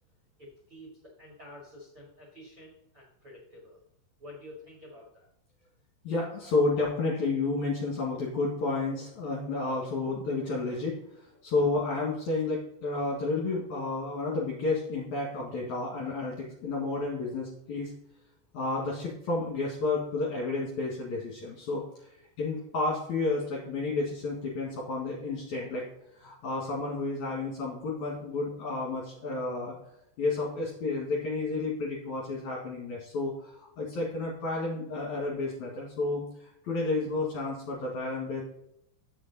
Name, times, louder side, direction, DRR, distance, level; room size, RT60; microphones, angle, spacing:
voice 1, 0.4-3.8 4.2-5.3, left 1 dB, 40° right, -3 dB, 2.0 m, -49 dB
voice 2, 6.0-17.9 18.5-25.8 26.1-29.8 30.2-38.4, left 3 dB, 55° left, -4 dB, 2.6 m, -31 dB
8.4 x 6.6 x 4.0 m, 0.80 s
omnidirectional pair, 5.2 m